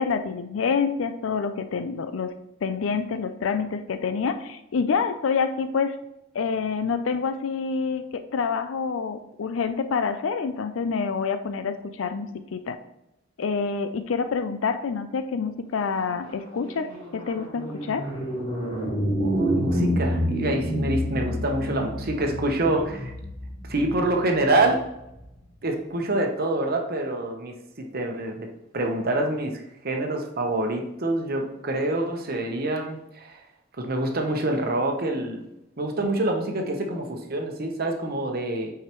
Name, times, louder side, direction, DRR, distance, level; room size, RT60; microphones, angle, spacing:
voice 1, 0.0-2.3 2.6-6.0 6.3-12.8 13.4-18.0 22.7-22.9, left 5 dB, 85° left, 10 dB, 0.4 m, -27 dB
sound 1, 15.9-25.4, equal, 30° left, 2.4 m, -29 dB
voice 2, 19.2-23.1 23.7-24.8 25.6-28.5 28.7-33.4 33.8-35.4 35.8-38.7, right 2 dB, 50° right, 3 dB, 0.9 m, -26 dB
8.7 x 4.7 x 3.0 m, 0.87 s
head